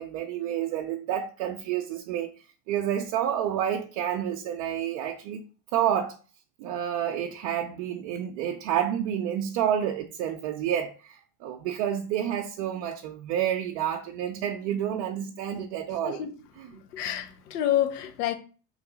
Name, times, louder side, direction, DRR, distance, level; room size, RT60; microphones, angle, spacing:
voice 1, 0.0-2.3 2.7-5.4 5.7-6.2 6.6-16.3 16.6-16.8, right 10 dB, 55° right, 0.7 m, -29 dB
voice 2, 16.9-18.3, left 11 dB, 70° left, 0.9 m, -28 dB
4.3 x 3.2 x 3.9 m
hypercardioid pair, 75°, 48 cm